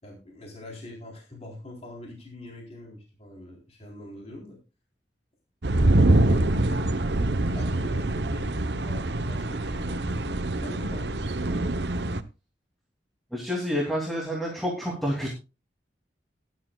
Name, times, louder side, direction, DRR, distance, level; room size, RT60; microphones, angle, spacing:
voice 1, 0.0-4.6 6.1-7.0 7.5-11.6, left 1 dB, 35° left, -1 dB, 3.9 m, -44 dB
sound 1, 5.6-12.2, right 1 dB, 70° right, 0.9 m, -24 dB
voice 2, 13.3-15.3, equal, ahead, -3 dB, 2.9 m, -28 dB
18.5 x 11.5 x 2.4 m, 0.30 s
head